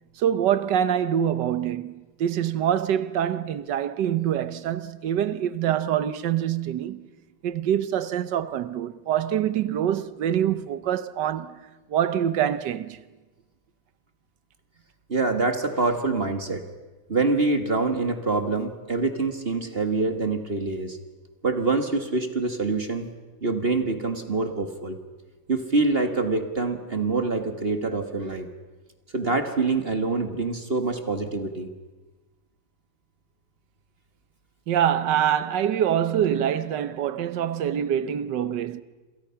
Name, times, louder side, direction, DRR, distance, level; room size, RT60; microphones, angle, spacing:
voice 1, 0.2-7.1 7.4-13.0 34.7-38.8, right 10 dB, 65° right, 1.5 m, -25 dB
voice 2, 15.1-16.6 17.1-21.0 21.4-23.1 23.4-25.0 25.5-28.5 29.1-31.7, right 3 dB, 30° right, 1.6 m, -25 dB
27.5 x 27.5 x 5.8 m
omnidirectional pair, 2.2 m